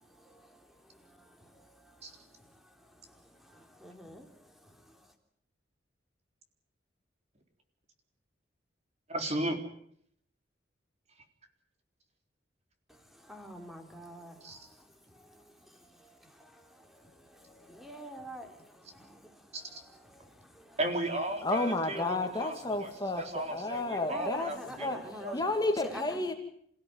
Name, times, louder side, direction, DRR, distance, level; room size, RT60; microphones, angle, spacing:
voice 1, 0.0-5.1 12.9-20.8 24.0-25.4 25.8-26.2, equal, ahead, 4 dB, 3.5 m, -49 dB
voice 2, 9.1-9.6 14.4-14.7 19.5-19.6 20.8-25.3, right 1 dB, 35° right, 5 dB, 3.9 m, -35 dB
voice 3, 21.4-24.5 24.8-25.0 25.3-26.3, left 2 dB, 20° left, 5 dB, 2.4 m, -31 dB
28.5 x 16.5 x 9.7 m, 0.68 s
head